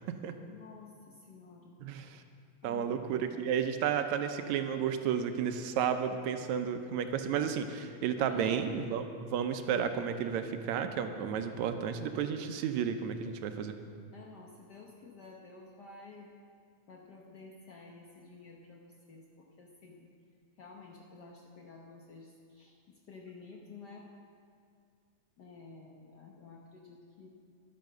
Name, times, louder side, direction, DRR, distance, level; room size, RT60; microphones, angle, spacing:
voice 1, 0.5-1.8 2.6-3.3 8.2-8.8 14.1-16.3 16.9-20.1 20.6-24.1 25.4-27.3, left 4 dB, 75° left, -1 dB, 0.9 m, -51 dB
voice 2, 1.8-2.2 2.6-13.8, right 8 dB, 80° right, 7 dB, 2.0 m, -32 dB
11.5 x 10.5 x 6.6 m, 2.2 s
omnidirectional pair, 3.4 m